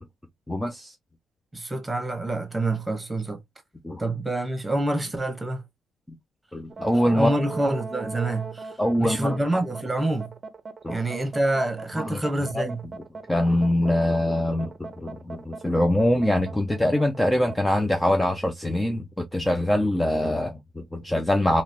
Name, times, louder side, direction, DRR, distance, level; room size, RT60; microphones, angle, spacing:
voice 1, 0.5-0.9 3.8-4.0 6.5-7.3 8.8-9.4 10.8-11.0 11.9-12.3 12.5-12.7 13.3-19.1 19.3-21.6, left 1 dB, 10° left, 0.6 m, -23 dB
voice 2, 1.5-3.4 4.0-5.6 7.1-8.7 9.0-10.3 10.9-12.8, right 2 dB, 10° right, 1.3 m, -27 dB
sound 1, 6.7-17.6, right 4 dB, 40° right, 0.6 m, -38 dB
3.1 x 3.0 x 2.9 m
cardioid pair, 90°, 0 cm